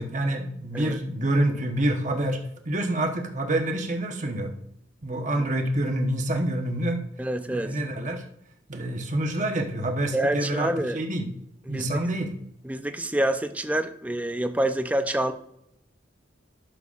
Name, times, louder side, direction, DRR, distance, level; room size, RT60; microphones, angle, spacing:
voice 1, 0.0-2.4 2.7-4.5 5.0-7.0 7.5-8.2 8.7-11.3 11.7-12.3, right 1 dB, 40° right, 3 dB, 1.0 m, -27 dB
voice 2, 7.2-7.8 10.1-11.0 11.7-12.0 12.6-15.3, right 1 dB, 5° right, 8 dB, 0.4 m, -27 dB
12.0 x 6.8 x 2.5 m, 0.77 s
head